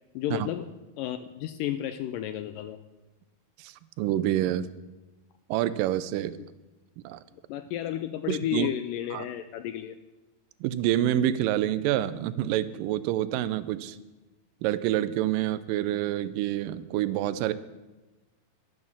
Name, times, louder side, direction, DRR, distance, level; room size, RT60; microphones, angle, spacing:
voice 1, 0.2-0.7 1.0-2.8 7.5-10.0, left 11 dB, 80° left, 10 dB, 2.0 m, -32 dB
voice 2, 3.6-4.7 5.5-6.4 7.0-7.2 8.3-8.7 9.1-9.3 10.6-14.0 14.6-17.5, right 12 dB, 80° right, 14 dB, 2.1 m, -27 dB
12.0 x 9.6 x 7.1 m, 1.1 s
omnidirectional pair, 4.4 m